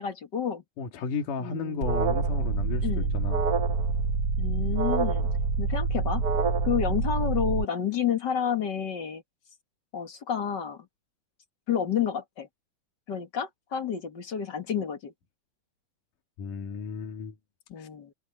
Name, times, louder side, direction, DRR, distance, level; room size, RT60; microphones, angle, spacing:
voice 1, 0.0-0.6 1.4-2.0 2.8-3.2 4.4-5.3 5.6-6.2 6.6-9.2 9.9-10.9 11.7-12.5 13.1-15.1 17.7-18.1, left 8 dB, 40° left, 1.9 m, -30 dB
voice 2, 0.8-3.5 16.4-17.3 17.8-17.9, left 5 dB, 80° left, 3.5 m, -34 dB
Alarm, 1.8-7.6, right 4 dB, 50° right, 1.1 m, -26 dB
omnidirectional pair, 3.6 m